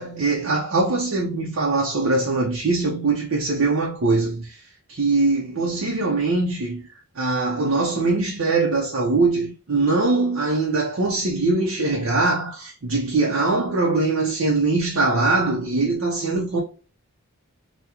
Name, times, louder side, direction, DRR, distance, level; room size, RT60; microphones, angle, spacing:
voice 1, 0.0-6.8 7.2-16.6, right 3 dB, 60° right, 0.6 m, -22 dB
3.6 x 2.1 x 2.8 m
head